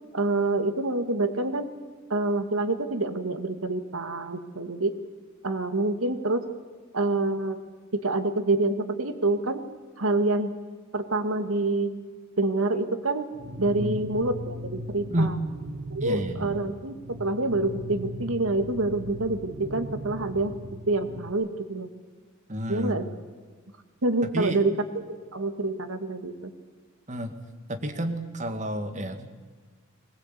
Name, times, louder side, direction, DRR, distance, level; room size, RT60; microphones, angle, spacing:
voice 1, 0.1-1.7 2.1-4.9 5.4-6.4 6.9-7.6 7.9-9.6 10.0-10.5 10.9-11.9 12.4-13.3 13.6-15.3 15.9-20.5 20.9-21.9 22.7-23.0 24.0-25.0 25.3-26.5, right 2 dB, 85° right, 8 dB, 1.9 m, -27 dB
sound 1, 13.3-21.3, right 1 dB, 55° right, 1.3 m, -39 dB
voice 2, 13.8-14.2 15.1-15.4 16.0-16.6 22.5-23.0 24.3-24.6 27.1-27.4 27.7-29.3, right 1 dB, 35° right, 6 dB, 2.0 m, -30 dB
21.0 x 19.5 x 8.4 m, 1.5 s
head